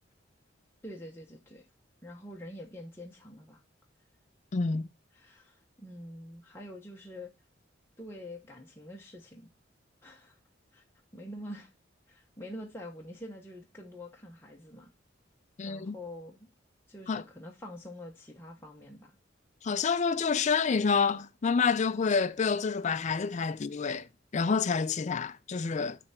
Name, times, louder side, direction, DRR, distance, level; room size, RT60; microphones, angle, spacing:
voice 1, 0.8-1.7 2.0-3.6 5.1-7.3 8.0-9.5 10.0-10.4 10.7-10.8 11.1-11.7 12.1-14.9 15.6-16.5 16.9-19.2, left 1 dB, 10° left, 0.9 m, -46 dB
voice 2, 4.5-4.9 15.6-15.9 17.1-17.2 19.6-24.1 24.3-26.0, left 5 dB, 40° left, 0.4 m, -28 dB
9.7 x 3.4 x 4.2 m
head